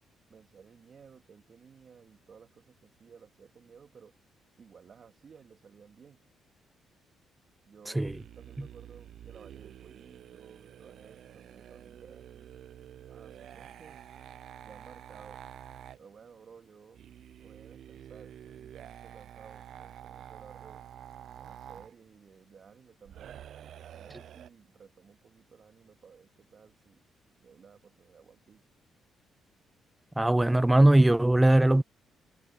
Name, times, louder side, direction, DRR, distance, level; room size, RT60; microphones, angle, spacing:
voice 1, 0.3-4.1 4.6-6.2 7.7-12.5 13.1-14.0 14.6-15.4 16.0-17.0 17.4-20.9 21.4-23.5 23.8-27.0 27.4-28.7, right 6 dB, 50° right, 2.3 m, -55 dB
sound 1, 8.0-16.0 16.9-21.9 23.1-24.5, right 10 dB, 70° right, 0.6 m, -48 dB
voice 2, 30.2-31.8, right 1 dB, 10° right, 0.3 m, -20 dB
cardioid pair, 90°, 0 cm